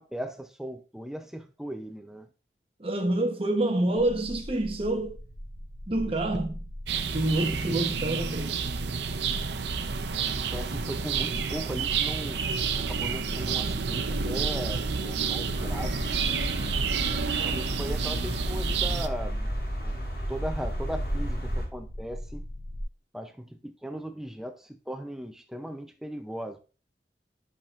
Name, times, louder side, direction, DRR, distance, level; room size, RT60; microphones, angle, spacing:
voice 1, 0.0-2.3 10.2-12.5 12.7-16.1 17.1-19.5 19.8-19.9 20.3-22.5 23.1-26.6, equal, 5° right, 0.5 m, -38 dB
voice 2, 2.8-5.2 5.9-6.6 7.0-8.6, right 1 dB, 30° right, 0.9 m, -27 dB
sound 1, 4.0-22.8, equal, 40° left, 1.3 m, -41 dB
sound 2, 6.9-19.1, right 6 dB, 80° right, 0.7 m, -30 dB
sound 3, 15.5-21.7, equal, 65° left, 4.4 m, -32 dB
11.5 x 6.0 x 2.5 m
head